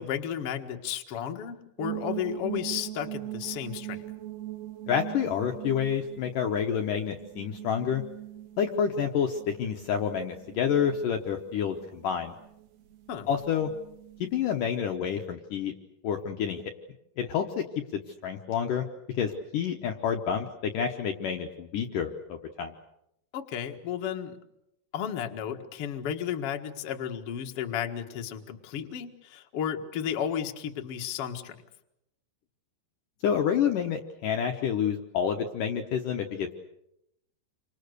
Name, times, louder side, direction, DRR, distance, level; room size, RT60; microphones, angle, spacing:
voice 1, 0.0-4.0 13.1-13.3 23.3-24.4 24.9-31.6, left 9 dB, 50° left, 4 dB, 1.8 m, -33 dB
sound 1, 1.8-14.8, right 15 dB, 70° right, 3.9 m, -42 dB
voice 2, 4.9-8.0 8.6-12.3 13.3-13.7 14.2-15.7 16.0-16.6 17.2-17.7 17.9-18.9 19.1-22.7 33.2-36.5, left 8 dB, 65° left, 4 dB, 2.2 m, -28 dB
28.5 x 25.5 x 6.7 m, 0.83 s
omnidirectional pair, 4.9 m